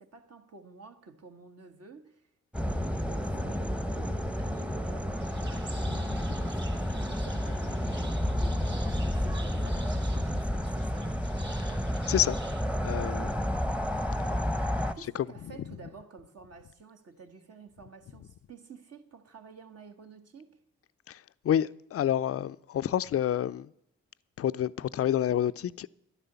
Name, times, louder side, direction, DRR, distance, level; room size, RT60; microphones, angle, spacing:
voice 1, 0.0-2.3 2.6-11.2 13.0-13.5 14.9-20.6, right 4 dB, 55° right, 1.6 m, -51 dB
sound 1, 2.5-14.9, equal, 5° right, 0.9 m, -30 dB
sound 2, 5.2-12.6, right 3 dB, 35° right, 2.8 m, -49 dB
voice 2, 12.1-12.5 12.8-13.3 15.1-15.5 21.1-23.7 24.4-25.9, left 10 dB, 50° left, 0.5 m, -29 dB
11.0 x 10.0 x 6.9 m
supercardioid pair, 50°, 29 cm